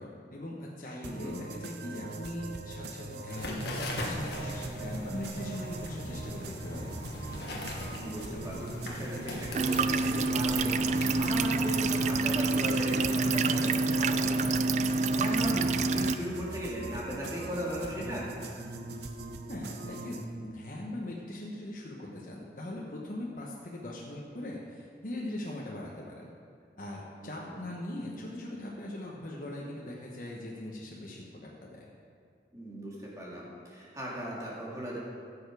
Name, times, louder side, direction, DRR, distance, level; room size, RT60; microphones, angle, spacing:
voice 1, 0.0-7.0 19.5-26.3 26.8-31.9, left 1 dB, 50° left, -4 dB, 1.1 m, -40 dB
voice 2, 1.0-1.4 7.9-18.3 27.2-27.6 32.5-35.0, equal, 20° right, -5 dB, 2.2 m, -37 dB
sound 1, 1.0-20.2, right 3 dB, 70° right, 0.8 m, -42 dB
sound 2, 3.3-11.5, left 1 dB, 70° left, 1.4 m, -39 dB
sound 3, 9.5-16.1, right 3 dB, 40° right, 0.3 m, -27 dB
15.5 x 6.9 x 4.8 m, 2.3 s
head